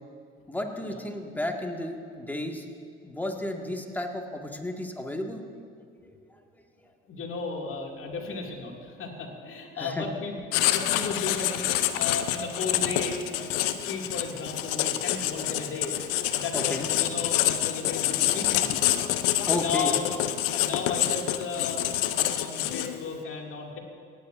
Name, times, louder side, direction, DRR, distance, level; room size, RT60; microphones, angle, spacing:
voice 1, 0.5-2.7 3.0-5.4 6.3-6.4 9.8-10.1 16.3-16.9 19.5-19.9, left 1 dB, 5° left, 2 dB, 1.8 m, -33 dB
voice 2, 7.1-10.4 10.7-11.6 11.9-15.9 16.3-18.7 19.5-20.2 20.5-23.8, left 4 dB, 45° left, 0 dB, 2.3 m, -34 dB
Writing, 10.5-23.1, left 13 dB, 70° left, 0.7 m, -27 dB
27.5 x 9.4 x 2.6 m, 2.4 s
figure-of-eight pair, 50°, 29 cm